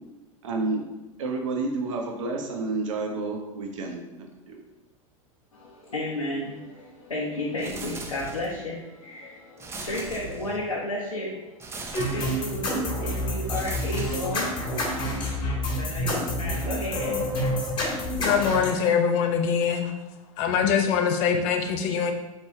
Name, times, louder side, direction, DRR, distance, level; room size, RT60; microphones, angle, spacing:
voice 1, 0.4-0.8 1.2-4.6, right 3 dB, 65° right, 1 dB, 0.7 m, -30 dB
voice 2, 5.5-17.7, left 1 dB, 85° left, -5 dB, 0.7 m, -33 dB
sound 1, 7.6-8.7 9.6-10.8 11.6-12.6 13.5-14.8, right 3 dB, 15° right, 0.5 m, -39 dB
sound 2, 11.9-18.7, left 1 dB, 25° left, 1.3 m, -28 dB
voice 3, 18.2-19.9 20.4-22.1, left 7 dB, 40° left, 4 dB, 0.6 m, -23 dB
4.3 x 3.2 x 3.1 m, 1.0 s
figure-of-eight pair, 85°, 18 cm